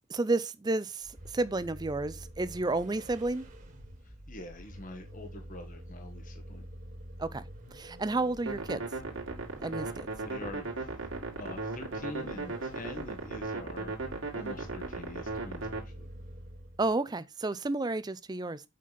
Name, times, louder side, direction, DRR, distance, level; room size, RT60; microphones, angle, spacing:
voice 1, 0.1-3.4 7.2-7.4 7.7-8.8 9.6-10.1 16.8-18.6, right 2 dB, 20° right, 0.4 m, -31 dB
Vehicle, 1.0-16.9, equal, 40° right, 1.8 m, -47 dB
voice 2, 4.0-6.6 10.2-10.9 11.2-14.0 14.3-16.1, left 2 dB, 40° left, 1.2 m, -45 dB
sound 1, 8.5-15.8, right 3 dB, 65° right, 2.2 m, -37 dB
7.4 x 5.6 x 4.1 m
head